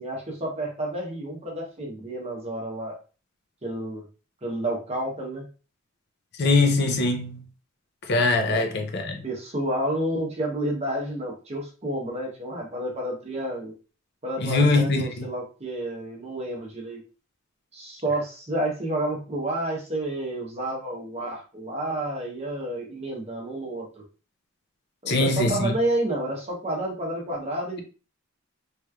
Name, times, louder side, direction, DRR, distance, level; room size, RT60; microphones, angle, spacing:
voice 1, 0.0-3.0 3.6-4.0 4.4-5.5 8.4-8.9 9.2-13.7 14.2-17.0 17.7-24.0 25.0-27.8, right 1 dB, 30° right, 0.8 m, -30 dB
voice 2, 6.4-7.4 8.1-9.2 14.4-15.3 25.1-25.8, left 2 dB, 50° left, 0.5 m, -22 dB
3.2 x 3.1 x 2.3 m
head